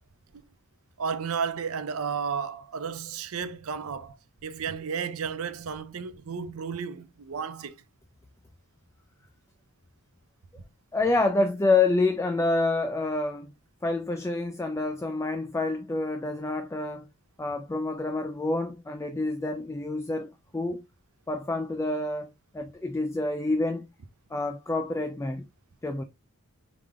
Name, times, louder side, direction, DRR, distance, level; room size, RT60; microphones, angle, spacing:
voice 1, 1.0-4.2 4.4-7.7, right 6 dB, 65° right, 0.5 m, -33 dB
voice 2, 10.9-13.5 13.8-17.1 17.4-20.8 21.3-22.3 22.5-23.9 24.3-25.4 25.8-26.0, left 2 dB, 15° left, 0.3 m, -27 dB
4.9 x 3.6 x 2.2 m
head